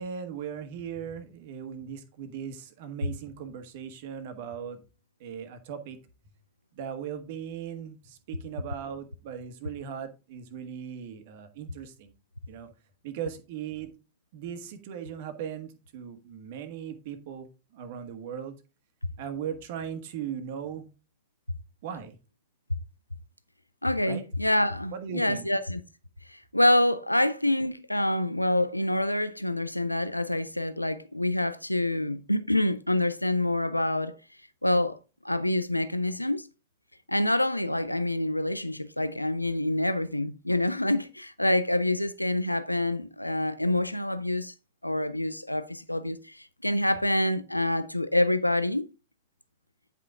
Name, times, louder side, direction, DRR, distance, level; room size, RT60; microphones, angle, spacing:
voice 1, 0.0-4.8 5.2-6.0 6.7-12.1 12.5-12.7 13.0-13.9 14.3-17.5 17.7-18.5 19.2-20.9 21.8-22.2 24.1-24.2 24.9-25.4, right 8 dB, 50° right, 1.5 m, -38 dB
voice 2, 23.8-25.8 26.3-34.2 34.6-35.0 35.2-36.4 37.1-44.5 44.8-48.9, left 1 dB, 85° left, 0.4 m, -26 dB
9.9 x 5.6 x 3.7 m
figure-of-eight pair, 90°, 0 cm